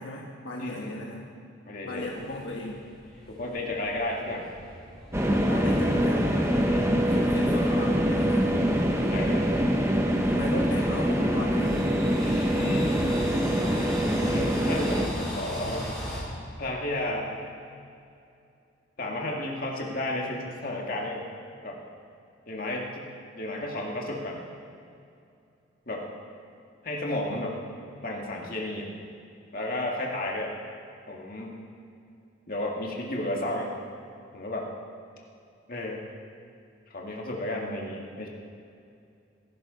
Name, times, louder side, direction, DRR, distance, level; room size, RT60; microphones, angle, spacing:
voice 1, 0.0-1.3 1.8-2.8 5.4-6.3 7.0-8.6 10.2-12.0 13.4-14.0, left 1 dB, 70° left, -2 dB, 1.4 m, -37 dB
voice 2, 0.6-1.0 1.7-2.1 3.3-4.5 6.7-7.3 9.1-9.5 12.3-12.9 14.2-15.9 16.6-17.3 19.0-21.3 21.6-21.8 22.5-23.1 23.3-24.4 25.9-26.1 26.8-27.6 28.0-28.9 29.5-30.5 31.1-31.6 32.5-33.7 34.3-34.7 35.7-36.0 36.9-38.3, left 1 dB, 45° left, -1 dB, 2.1 m, -33 dB
sound 1, 2.0-16.2, equal, 5° left, 3.8 m, -39 dB
sound 2, 5.1-15.1, equal, 15° right, 1.0 m, -24 dB
20.5 x 12.0 x 4.1 m, 2.5 s
head